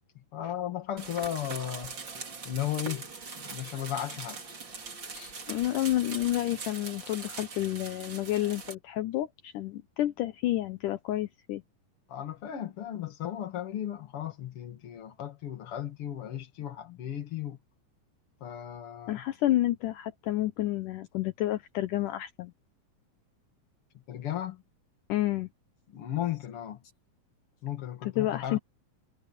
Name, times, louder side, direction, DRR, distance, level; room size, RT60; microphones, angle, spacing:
voice 1, 0.1-2.0 2.4-3.1 3.3-4.4 5.1-5.3 12.1-17.6 18.4-19.2 23.9-24.6 25.9-26.8 27.6-28.6, left 11 dB, 45° left, 2.5 m, -35 dB
sound 1, 1.0-8.7, right 4 dB, 35° right, 3.0 m, -42 dB
voice 2, 5.5-11.6 19.1-22.5 25.1-25.5 28.2-28.6, left 14 dB, 75° left, 2.3 m, -30 dB
omnidirectional pair, 4.0 m